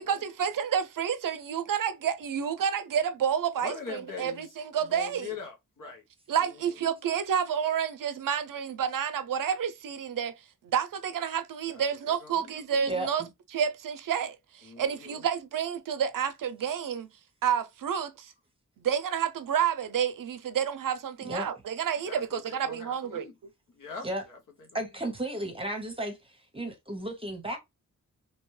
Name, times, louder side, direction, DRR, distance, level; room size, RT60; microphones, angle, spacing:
voice 1, 0.0-5.3 6.3-10.3 10.6-13.2 13.5-17.1 17.4-18.3 18.8-23.3, right 8 dB, 85° right, 0.5 m, -29 dB
voice 2, 3.6-4.5 4.8-6.1 6.4-6.8 11.7-12.5 14.6-15.3 22.0-23.3 23.7-24.8, left 5 dB, 80° left, 0.8 m, -43 dB
voice 3, 12.9-13.3 21.2-21.5 24.0-24.2 24.7-27.6, right 1 dB, 15° right, 0.7 m, -34 dB
2.8 x 2.1 x 3.1 m
wide cardioid pair, 140°, 32 cm